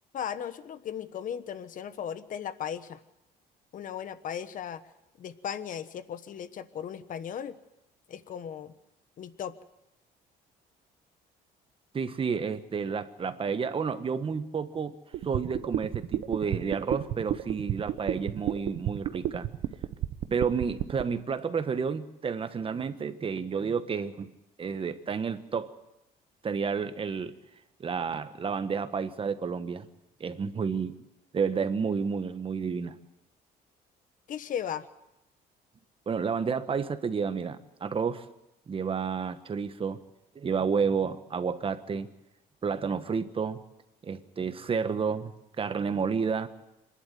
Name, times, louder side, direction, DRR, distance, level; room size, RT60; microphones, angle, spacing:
voice 1, 0.1-3.0 3.7-4.8 5.2-7.6 8.1-8.7 9.2-9.6 34.3-34.9, left 9 dB, 50° left, 13 dB, 1.1 m, -36 dB
voice 2, 11.9-15.0 15.2-19.5 20.3-24.3 24.6-25.7 26.4-27.4 27.8-29.9 30.2-31.0 31.3-33.0 36.1-38.3 38.7-40.0 40.3-42.1 42.6-43.6 44.0-46.5, right 6 dB, 35° right, 10 dB, 1.3 m, -30 dB
sound 1, 15.1-21.0, right 13 dB, 70° right, 1.0 m, -31 dB
25.5 x 11.5 x 9.3 m, 0.92 s
cardioid pair, 110°, 17 cm